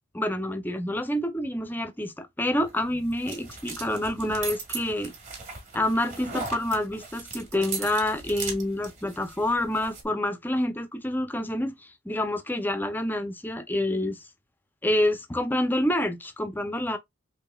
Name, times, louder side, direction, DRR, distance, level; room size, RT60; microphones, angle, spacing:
voice 1, 0.1-5.1 5.7-14.2 14.8-17.0, left 1 dB, 10° left, 0.5 m, -27 dB
sound 1, 2.6-10.0, right 5 dB, 35° right, 1.5 m, -39 dB
4.8 x 2.9 x 2.3 m
head